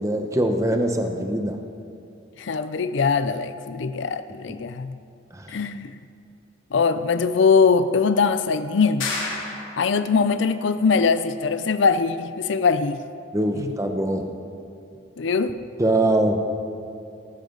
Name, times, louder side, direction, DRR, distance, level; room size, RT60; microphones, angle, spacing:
voice 1, 0.0-1.6 5.3-5.5 13.3-14.3 15.8-16.4, right 1 dB, 15° right, 4 dB, 0.9 m, -22 dB
voice 2, 2.4-5.0 5.5-6.0 6.7-9.1 9.8-13.0 13.6-13.7 15.2-15.6, left 5 dB, 70° left, 12 dB, 0.5 m, -21 dB
sound 1, 9.0-10.1, left 3 dB, 85° left, 3.9 m, -30 dB
19.0 x 13.5 x 3.9 m, 2.5 s
head